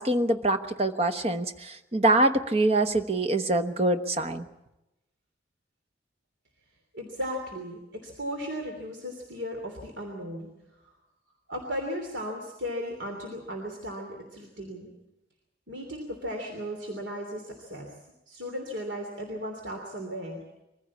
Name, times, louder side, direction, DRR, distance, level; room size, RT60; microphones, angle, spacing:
voice 1, 0.0-4.4, right 2 dB, 35° right, 7 dB, 1.1 m, -25 dB
voice 2, 6.9-10.5 10.8-10.9 11.5-14.9 15.7-17.9 18.3-20.4, equal, 85° right, 2 dB, 3.1 m, -36 dB
23.0 x 15.5 x 8.5 m, 0.95 s
head